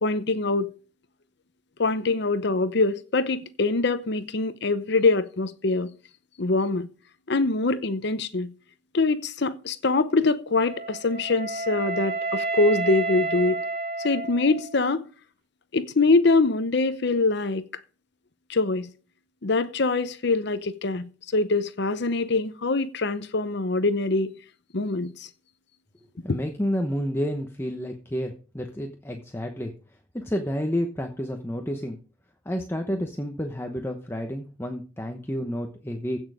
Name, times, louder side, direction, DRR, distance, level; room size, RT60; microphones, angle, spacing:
voice 1, 0.0-0.7 1.8-5.9 6.4-6.9 7.3-8.5 8.9-13.6 14.0-15.0 15.7-17.6 18.5-18.9 19.4-24.3 24.7-25.3 26.3-26.4, left 3 dB, 60° left, 0.8 m, -24 dB
Wind instrument woodwind instrument, 10.6-14.8, right 3 dB, 55° right, 2.6 m, -30 dB
voice 2, 26.2-29.7 30.1-32.0 32.4-36.2, equal, 15° left, 1.0 m, -30 dB
16.0 x 6.4 x 4.9 m
head